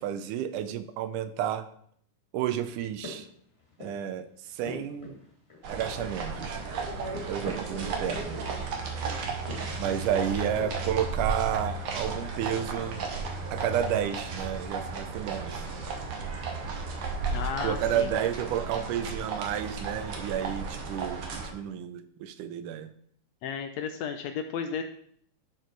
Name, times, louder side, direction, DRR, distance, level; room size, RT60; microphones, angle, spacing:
voice 1, 0.0-1.7 2.3-3.3 3.8-5.2 5.7-6.6 7.3-8.4 9.8-13.1 13.5-15.7 17.6-22.9, right 10 dB, 90° right, 11 dB, 2.2 m, -31 dB
sound 1, 2.8-4.1 4.4-6.0 6.2-8.8 9.3-11.0, left 3 dB, 20° left, 2.2 m, -45 dB
sound 2, 5.6-21.5, right 4 dB, 55° right, 1.7 m, -34 dB
voice 2, 9.9-10.3 17.3-18.1 23.4-24.8, left 7 dB, 80° left, 7 dB, 1.6 m, -34 dB
11.0 x 4.6 x 4.5 m, 0.65 s
omnidirectional pair, 3.5 m